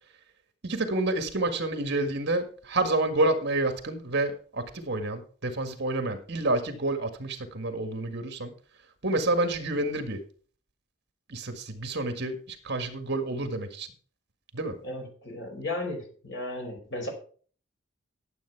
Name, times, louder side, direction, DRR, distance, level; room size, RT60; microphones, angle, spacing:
voice 1, 0.6-8.5 9.0-10.2 11.3-13.9 14.5-14.8, right 2 dB, 55° right, 8 dB, 1.8 m, -29 dB
voice 2, 14.8-17.1, left 2 dB, 55° left, 2 dB, 4.8 m, -35 dB
12.5 x 7.9 x 4.7 m, 0.43 s
head